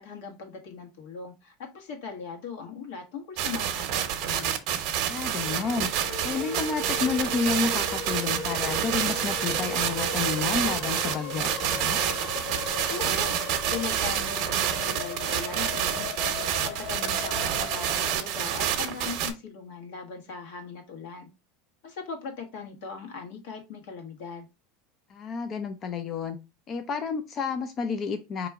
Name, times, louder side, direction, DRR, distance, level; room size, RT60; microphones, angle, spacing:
voice 1, 0.0-4.5 12.9-16.1 16.6-21.3 21.8-24.5, left 5 dB, 70° left, 3 dB, 1.5 m, -39 dB
sound 1, 3.4-19.3, right 10 dB, 50° right, 0.8 m, -28 dB
voice 2, 5.1-5.9 6.2-12.0 25.1-26.4 26.7-28.5, left 5 dB, 30° left, 8 dB, 0.4 m, -30 dB
sound 2, 5.3-18.2, left 4 dB, 50° left, 1.6 m, -38 dB
4.6 x 2.9 x 3.5 m, 0.26 s
supercardioid pair, 160°, 0 cm